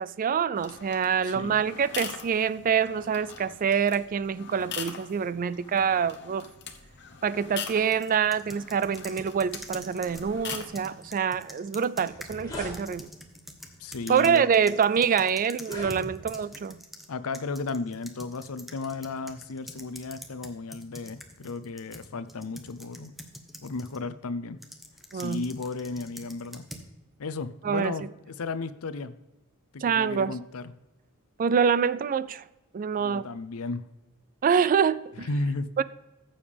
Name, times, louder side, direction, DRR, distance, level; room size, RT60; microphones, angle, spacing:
voice 1, 0.0-6.5 7.2-13.1 14.1-16.8 25.1-25.4 27.6-27.9 29.8-30.3 31.4-32.4 32.7-33.3 34.4-35.3 35.8-35.9, right 7 dB, 40° right, 0.3 m, -26 dB
sound 1, 0.5-11.2, left 7 dB, 50° left, 1.0 m, -42 dB
voice 2, 1.2-1.6 13.8-14.5 17.1-23.1 23.6-24.6 25.1-26.7 27.2-29.1 29.7-30.7 33.0-33.8 35.3-35.7, left 3 dB, 65° left, 0.6 m, -34 dB
sound 2, 7.9-17.1 17.3-24.0 24.6-26.9, equal, ahead, 1.0 m, -46 dB
sound 3, 11.6-11.7 12.0-12.8 13.6-13.8 14.5-14.6 15.5-16.4, left 1 dB, 20° left, 3.7 m, -39 dB
14.5 x 7.1 x 3.4 m
head